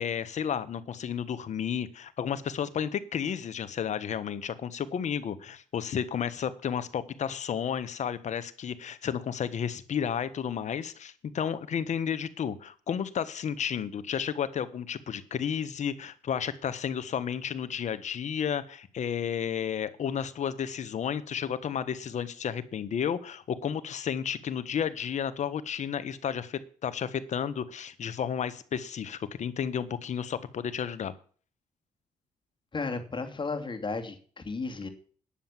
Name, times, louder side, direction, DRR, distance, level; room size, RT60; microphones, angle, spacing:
voice 1, 0.0-31.1, left 8 dB, 55° left, 13 dB, 1.4 m, -32 dB
voice 2, 32.7-34.9, left 4 dB, 35° left, 5 dB, 2.7 m, -34 dB
10.5 x 7.3 x 7.3 m, 0.42 s
supercardioid pair, 70°, 14 cm